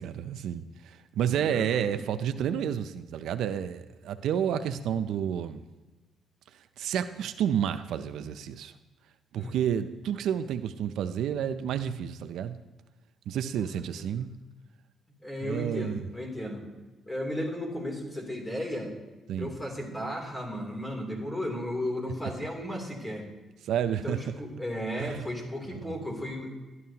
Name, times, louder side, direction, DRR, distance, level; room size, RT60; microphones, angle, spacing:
voice 1, 0.0-5.6 6.8-8.7 9.3-12.6 13.3-14.3 15.4-16.0 19.3-19.5 23.6-24.2 25.0-25.2 25.8-25.9, right 9 dB, 80° right, 11 dB, 0.4 m, -30 dB
voice 2, 1.4-2.1 9.4-9.6 13.6-14.3 15.2-16.6 17.1-18.9 19.4-23.3 23.9-26.5, left 1 dB, 15° left, 1 dB, 2.9 m, -35 dB
12.5 x 11.0 x 2.8 m, 1.2 s
cardioid pair, 90°, 0 cm